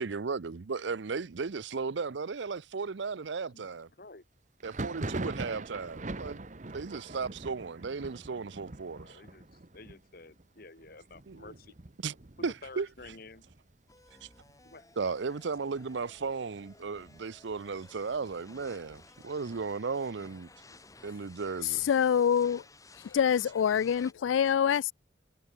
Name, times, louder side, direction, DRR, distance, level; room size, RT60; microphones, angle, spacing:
voice 1, 0.0-3.9 4.6-9.2 11.3-11.5 12.0-12.2 12.4-12.9 14.2-14.3 15.0-20.5 21.0-21.9, right 4 dB, 70° right, 0.6 m, -35 dB
voice 2, 3.5-4.2 8.9-11.8 12.6-13.4 14.6-14.8, left 3 dB, 50° left, 1.9 m, -51 dB
Thunder, 4.6-14.1 14.4-15.1 15.3-16.3 16.7-18.4, right 2 dB, 40° right, 1.1 m, -43 dB
sound 1, 13.9-24.1, left 3 dB, 20° left, 4.4 m, -56 dB
voice 3, 21.6-22.6 23.0-24.9, left 8 dB, 85° left, 0.3 m, -26 dB
head